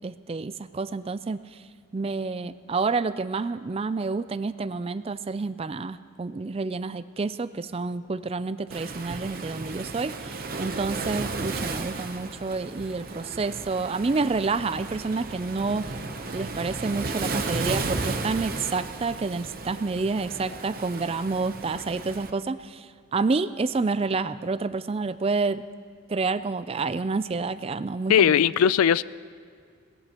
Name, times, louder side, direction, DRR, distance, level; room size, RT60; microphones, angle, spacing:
voice 1, 0.0-1.4 1.9-15.8 16.3-25.6 26.1-28.4, right 4 dB, 25° right, 14 dB, 0.3 m, -29 dB
Waves surf, 8.7-22.3, right 3 dB, 45° right, 0.8 m, -34 dB
voice 2, 28.1-29.0, left 8 dB, 90° left, 19 dB, 0.3 m, -19 dB
22.5 x 19.0 x 3.0 m, 2.2 s
head